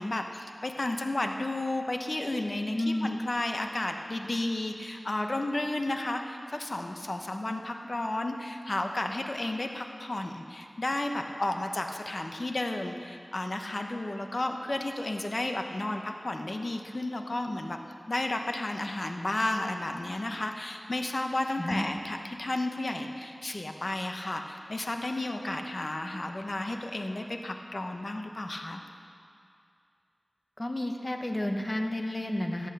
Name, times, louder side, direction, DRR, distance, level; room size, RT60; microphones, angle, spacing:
voice 1, 0.0-17.8 18.1-28.8, left 2 dB, 55° left, 4 dB, 1.0 m, -32 dB
voice 2, 2.7-3.1 21.6-21.9 30.6-32.7, left 1 dB, 35° left, 4 dB, 1.2 m, -31 dB
16.0 x 8.3 x 6.7 m, 2.4 s
wide cardioid pair, 50°, 0 cm